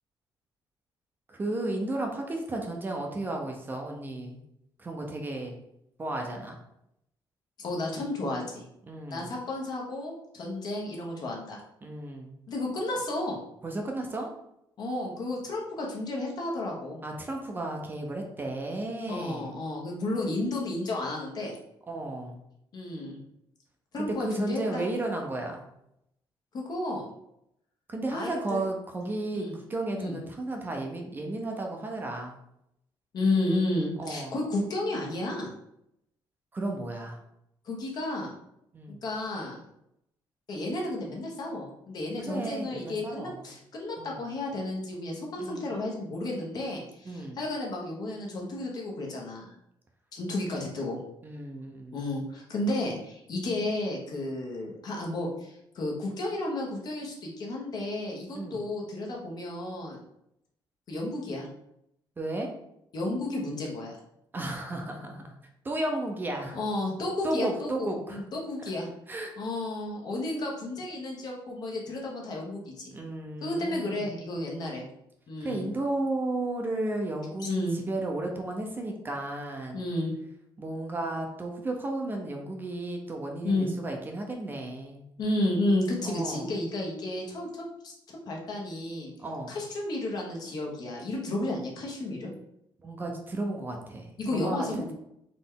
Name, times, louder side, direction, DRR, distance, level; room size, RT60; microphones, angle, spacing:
voice 1, 1.3-4.4 4.8-5.6 6.0-6.6 8.9-9.3 11.8-12.3 13.6-14.3 17.0-19.5 21.9-22.4 23.9-25.6 27.9-32.4 34.0-34.3 36.5-37.2 38.7-39.0 42.2-43.4 44.0-44.2 45.4-45.7 47.1-47.4 51.2-52.0 58.3-58.6 62.2-62.5 64.3-65.4 65.6-66.6 67.2-68.2 69.1-69.3 72.9-74.1 75.4-79.8 80.6-85.1 86.0-86.5 89.2-89.6 92.8-94.9, right 2 dB, 25° right, 1 dB, 0.7 m, -33 dB
voice 2, 7.6-8.6 9.1-11.6 12.5-13.4 14.8-17.0 19.1-21.5 22.7-23.2 23.9-24.8 26.5-27.1 28.1-28.6 29.3-29.5 29.9-30.2 33.1-35.5 37.6-38.3 39.0-39.6 40.5-49.5 50.1-51.0 51.9-60.0 60.9-61.5 62.9-64.0 66.5-68.9 69.4-72.9 73.4-74.8 75.3-75.7 77.4-77.8 79.7-80.1 83.4-83.7 85.2-89.1 89.5-92.3 94.2-94.9, left 2 dB, 50° left, -1 dB, 1.2 m, -32 dB
4.1 x 3.3 x 3.8 m, 0.79 s
cardioid pair, 150°, 9 cm